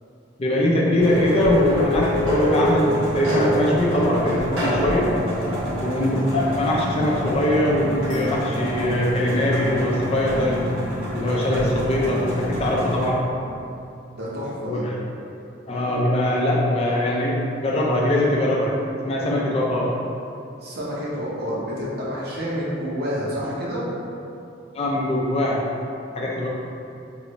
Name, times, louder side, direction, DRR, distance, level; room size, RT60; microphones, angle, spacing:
voice 1, 0.4-5.1 5.8-10.6 11.1-13.3 14.6-14.9 15.7-18.7 19.0-19.9 24.7-25.6 26.1-26.5, left 1 dB, 35° left, -4 dB, 0.4 m, -22 dB
sound 1, 1.0-13.1, equal, 90° right, 1.0 m, -26 dB
voice 2, 14.1-14.8 20.6-23.8, equal, 55° right, -6 dB, 0.7 m, -29 dB
3.1 x 2.5 x 3.0 m, 2.7 s
head